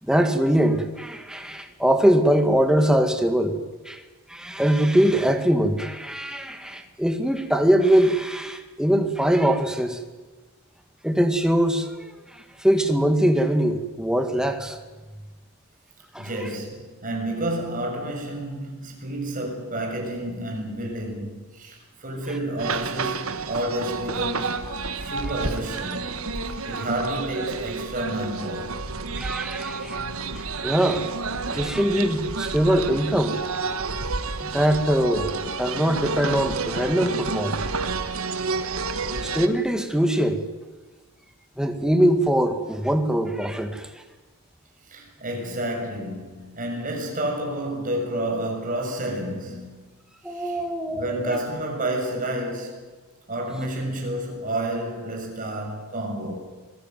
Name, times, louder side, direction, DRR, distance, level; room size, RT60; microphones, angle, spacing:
voice 1, 0.0-3.6 3.9-4.0 4.3-10.0 11.0-14.8 16.1-16.3 29.2-30.0 30.6-31.1 31.5-33.4 34.4-37.6 39.2-40.4 41.6-43.9 50.2-51.4, right 1 dB, 5° right, 2.0 m, -22 dB
voice 2, 16.2-26.1 26.4-28.8 44.9-49.9 50.2-50.6 50.9-52.8 53.3-56.5, right 1 dB, 40° right, 7.0 m, -30 dB
sound 1, 22.6-39.5, right 4 dB, 70° right, 1.5 m, -30 dB
25.5 x 18.0 x 9.4 m
head